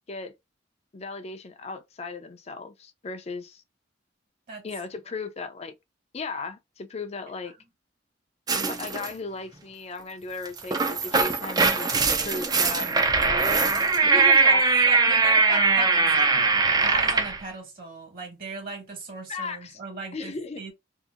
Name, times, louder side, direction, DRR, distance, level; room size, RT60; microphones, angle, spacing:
voice 1, 0.9-3.6 4.6-5.7 6.1-7.5 8.5-11.9 12.2-13.6 14.0-14.6 19.3-19.8 20.1-20.7, left 3 dB, 35° left, 0.5 m, -36 dB
sound 1, 8.5-9.1 10.5-17.4, right 4 dB, 20° right, 0.4 m, -21 dB
voice 2, 14.0-14.5 14.8-16.4 16.8-20.7, right 3 dB, 50° right, 1.4 m, -37 dB
2.8 x 2.5 x 2.4 m
head